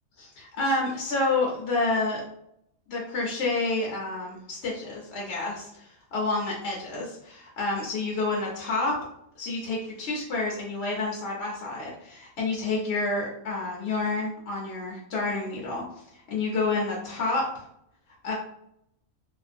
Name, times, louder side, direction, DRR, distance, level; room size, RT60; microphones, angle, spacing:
voice 1, 0.2-2.2 2.9-9.0 9.4-15.8 16.1-17.6 18.2-18.4, left 3 dB, 60° left, -3 dB, 0.8 m, -29 dB
2.5 x 2.5 x 2.4 m, 0.74 s
omnidirectional pair, 1.5 m